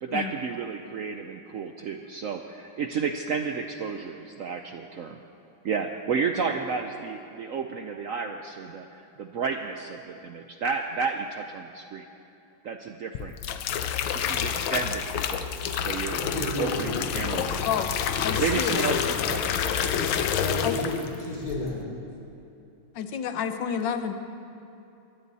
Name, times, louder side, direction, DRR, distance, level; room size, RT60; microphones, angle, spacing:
voice 1, 0.0-5.2 5.6-12.1 12.6-13.4 14.1-17.7 18.4-20.1, right 5 dB, 75° right, 5 dB, 0.7 m, -32 dB
sound 1, 13.1-21.2 21.5-21.8, left 8 dB, 90° left, 1.7 m, -28 dB
voice 2, 16.1-17.0 20.4-21.8, left 2 dB, 45° left, -3 dB, 4.1 m, -32 dB
voice 3, 18.2-19.0 20.6-20.8 22.9-24.1, left 8 dB, 70° left, 8 dB, 1.5 m, -30 dB
22.0 x 16.0 x 4.1 m, 2.8 s
omnidirectional pair, 2.2 m